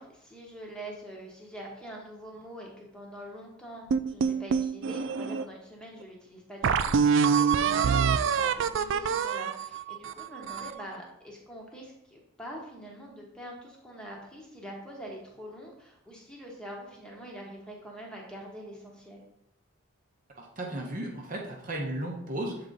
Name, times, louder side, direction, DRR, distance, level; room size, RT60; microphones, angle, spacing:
voice 1, 0.0-19.2, equal, 5° left, -2 dB, 1.0 m, -44 dB
sound 1, 3.9-5.5 6.0-6.1 6.6-10.8, right 6 dB, 60° right, 0.3 m, -25 dB
voice 2, 20.3-22.7, right 1 dB, 40° right, 0 dB, 0.8 m, -35 dB
7.3 x 3.9 x 3.9 m, 0.79 s
head